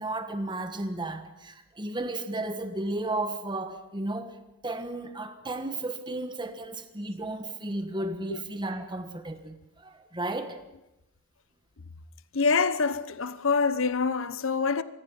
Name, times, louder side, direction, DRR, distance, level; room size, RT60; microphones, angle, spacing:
voice 1, 0.0-4.3 4.6-10.6, right 2 dB, 20° right, 1.4 m, -34 dB
voice 2, 12.3-14.8, left 4 dB, 60° left, 0.9 m, -25 dB
26.0 x 20.5 x 5.6 m
head